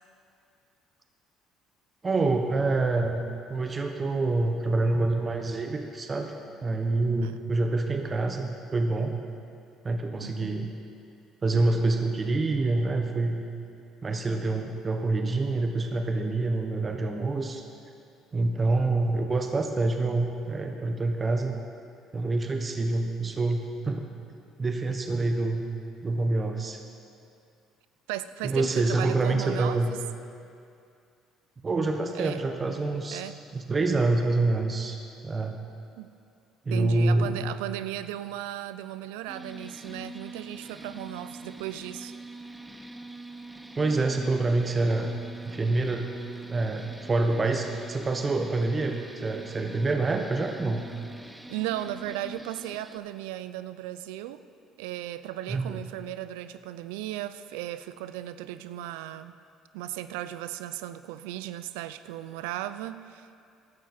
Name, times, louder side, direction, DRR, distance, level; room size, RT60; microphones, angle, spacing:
voice 1, 2.0-3.2 3.5-6.3 6.6-9.2 9.8-10.7 11.4-13.4 14.0-17.6 18.3-21.5 22.1-24.0 24.6-25.6 26.0-26.8 28.4-29.9 31.6-33.2 33.5-35.0 35.2-35.6 36.6-37.5 43.8-45.2 45.5-46.1 46.5-50.8 55.5-55.8, right 2 dB, 30° right, 4 dB, 1.2 m, -26 dB
voice 2, 10.2-10.6 28.1-30.0 32.1-32.4 33.1-33.4 36.0-36.1 36.7-42.1 51.5-54.4 54.8-59.3 59.7-63.3, right 13 dB, 85° right, 13 dB, 0.4 m, -36 dB
sound 1, 39.3-53.0, right 2 dB, 10° right, 0.8 m, -44 dB
15.5 x 12.0 x 4.3 m, 2.4 s
supercardioid pair, 70°, 0 cm